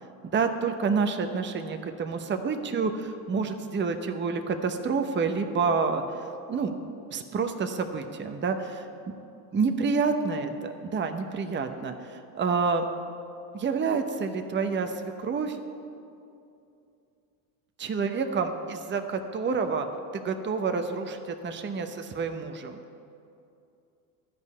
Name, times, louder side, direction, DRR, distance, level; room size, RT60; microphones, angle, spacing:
voice 1, 0.3-6.0 6.5-6.7 7.1-8.8 9.5-12.9 13.5-15.6 17.8-19.9 20.2-22.8, right 5 dB, 25° right, 6 dB, 0.8 m, -28 dB
12.0 x 5.4 x 8.3 m, 2.6 s
supercardioid pair, 90°, 45 cm